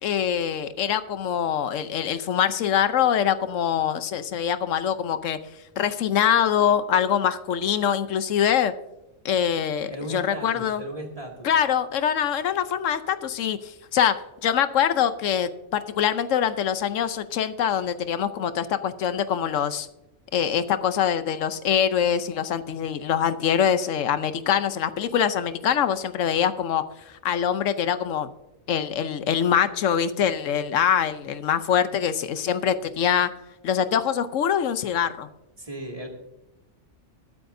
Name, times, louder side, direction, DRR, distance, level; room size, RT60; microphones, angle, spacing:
voice 1, 0.0-5.4 5.8-8.7 9.2-10.8 11.4-19.9 20.3-26.8 27.2-28.3 28.7-33.3 33.6-35.3, left 8 dB, 85° left, 12 dB, 1.1 m, -24 dB
voice 2, 9.9-11.5 35.6-36.1, right 1 dB, 30° right, 0 dB, 2.3 m, -36 dB
21.0 x 8.5 x 2.6 m, 0.94 s
omnidirectional pair, 1.3 m